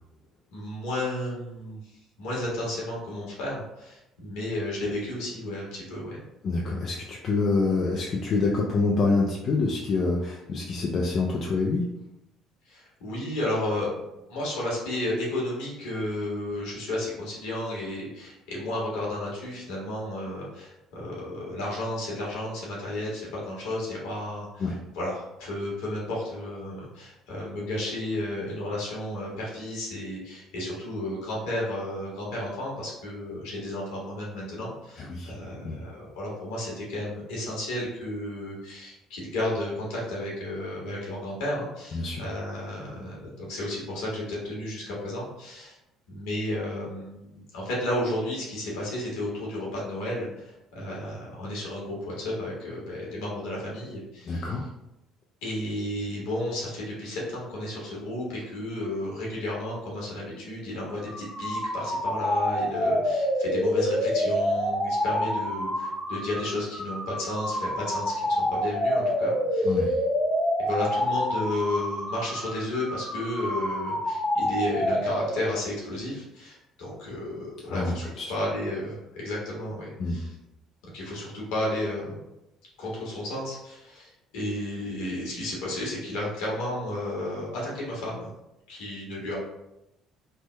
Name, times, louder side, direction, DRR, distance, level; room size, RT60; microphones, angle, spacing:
voice 1, 0.5-1.9 2.2-6.2 12.7-14.0 14.3-45.8 46.1-54.4 55.4-70.0 70.6-80.3 80.9-82.2 82.8-88.3 88.7-89.4, left 1 dB, 80° left, -4 dB, 1.3 m, -33 dB
voice 2, 6.4-11.8 24.6-24.8 35.0-35.3 35.6-35.8 41.9-42.2 54.3-54.6 69.6-69.9 77.7-78.2 80.0-80.2, left 3 dB, 55° left, -2 dB, 0.4 m, -26 dB
sound 1, 60.9-75.6, equal, ahead, 0.6 m, -27 dB
3.3 x 2.1 x 3.2 m, 0.90 s
hypercardioid pair, 65°, 0 cm